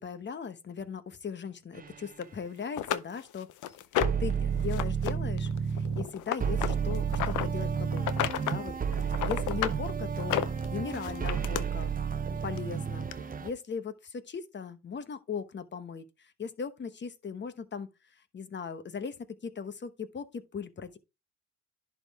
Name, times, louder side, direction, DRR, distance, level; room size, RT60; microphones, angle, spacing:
voice 1, 0.0-3.5 4.2-21.0, left 6 dB, 35° left, 1.0 m, -39 dB
Toxic Leak, 1.7-2.0 4.0-6.1 6.4-13.5, right 7 dB, 30° right, 0.8 m, -31 dB
sound 1, 2.2-2.3 2.8-4.3 4.7-5.1 5.4-7.5 8.0-8.6 8.9-9.8 10.2-11.6 12.6-12.7 13.1-13.2, left 11 dB, 80° left, 0.7 m, -32 dB
11.0 x 3.7 x 3.5 m
cardioid pair, 90°, 30 cm